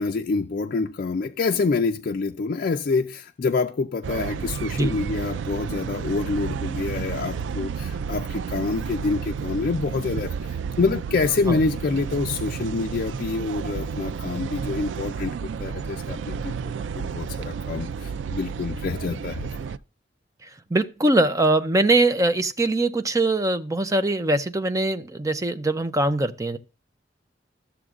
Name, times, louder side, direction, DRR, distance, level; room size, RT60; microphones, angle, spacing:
voice 1, 0.0-19.5, left 4 dB, 50° left, 0.4 m, -27 dB
sound 1, 4.0-19.8, right 6 dB, 90° right, 0.3 m, -31 dB
voice 2, 20.7-26.6, right 2 dB, 20° right, 0.5 m, -22 dB
13.5 x 7.0 x 2.4 m
head